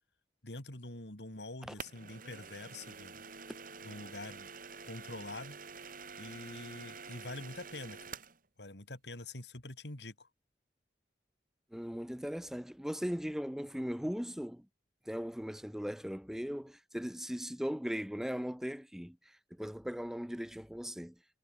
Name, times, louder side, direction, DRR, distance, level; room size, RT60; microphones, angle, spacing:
voice 1, 0.4-3.2 3.8-4.5 4.8-5.6 6.2-8.2 8.6-10.3, left 2 dB, 70° left, 3.4 m, -45 dB
sound 1, 1.8-8.4, right 5 dB, 50° right, 4.8 m, -48 dB
voice 2, 11.7-14.7 15.1-19.2 19.6-21.1, equal, ahead, 0.6 m, -38 dB
head